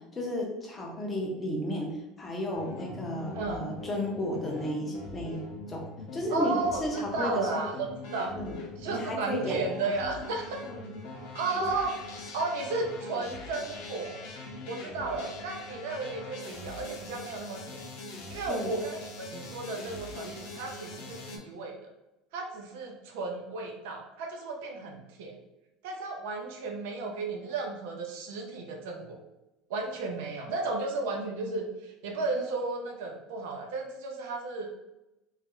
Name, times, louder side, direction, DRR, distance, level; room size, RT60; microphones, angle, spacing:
voice 1, 0.0-5.8 6.1-6.5 6.8-7.6 8.3-8.6 8.9-9.6 10.7-10.9 11.6-11.7 18.5-18.7, left 1 dB, 15° left, -1 dB, 0.5 m, -33 dB
sound 1, 2.5-21.4, left 2 dB, 60° left, 0.6 m, -42 dB
voice 2, 6.3-8.3 8.8-10.6 11.3-12.0 12.3-14.3 14.7-17.8 18.3-21.9 22.3-25.4 25.8-29.2 29.7-34.7, right 3 dB, 80° right, 1 dB, 0.5 m, -34 dB
3.0 x 2.4 x 2.9 m, 0.96 s
cardioid pair, 180°, 0 cm